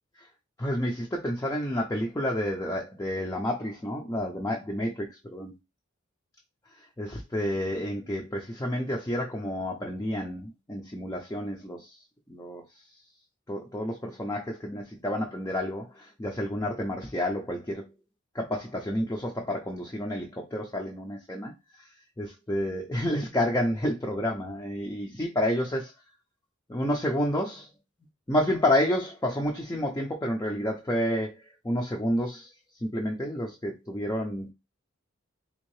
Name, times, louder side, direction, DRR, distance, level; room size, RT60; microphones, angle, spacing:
voice 1, 0.6-5.5 7.0-11.8 12.3-12.6 13.5-15.8 16.2-17.8 18.4-21.5 22.2-25.9 26.7-27.7 28.3-31.3 31.6-32.5 32.8-34.5, left 1 dB, 15° left, 0 dB, 0.5 m, -29 dB
3.6 x 2.7 x 3.1 m, 0.24 s
head